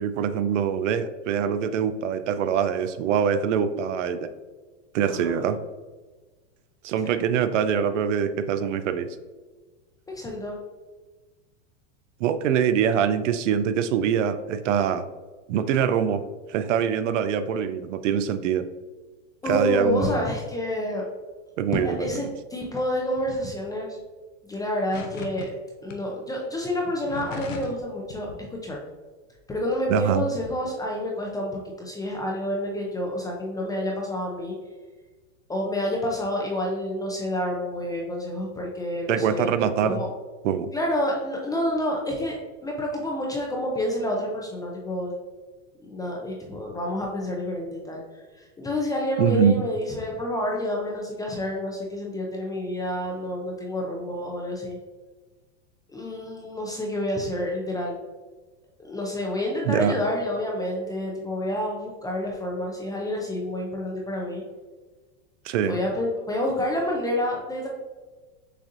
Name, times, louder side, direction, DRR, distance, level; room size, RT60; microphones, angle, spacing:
voice 1, 0.0-4.3 4.9-5.6 6.8-9.1 12.2-15.1 15.5-16.2 16.5-18.7 19.5-20.3 21.6-22.0 29.9-30.2 39.1-40.0 40.4-40.7 49.2-49.6 59.7-60.0 65.4-65.8, right 8 dB, 75° right, 11 dB, 0.5 m, -24 dB
voice 2, 5.1-5.5 7.0-7.1 10.1-10.6 19.4-21.0 21.7-24.0 24.4-25.5 25.8-28.8 29.5-34.6 35.5-39.5 39.8-40.1 40.7-45.2 45.8-54.8 55.9-58.0 58.8-64.4 65.6-67.7, left 1 dB, 10° left, -1 dB, 0.4 m, -29 dB
sound 1, 24.9-25.5 25.9-26.0 26.8-27.8 28.1-28.4, left 5 dB, 85° left, 0.8 m, -37 dB
6.5 x 2.6 x 2.5 m, 1.3 s
hypercardioid pair, 125°, 37 cm